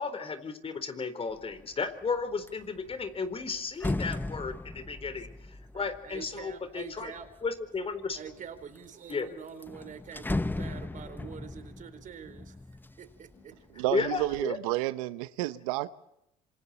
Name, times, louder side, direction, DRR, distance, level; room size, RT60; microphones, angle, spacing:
voice 1, 0.0-5.3 5.7-7.1 7.4-8.2 9.1-9.3 13.4-13.5 13.9-14.6, left 4 dB, 35° left, 4.1 m, -34 dB
sound 1, 1.4-1.7 2.1-7.5 8.1-8.8 9.1-9.2 9.5-13.4 13.8-14.4, left 2 dB, 10° left, 1.0 m, -37 dB
voice 2, 5.7-7.4 8.2-12.5 12.9-13.8, right 7 dB, 50° right, 4.3 m, -45 dB
voice 3, 13.8-15.9, right 17 dB, 85° right, 0.9 m, -30 dB
27.0 x 27.0 x 4.4 m
supercardioid pair, 75°, 17 cm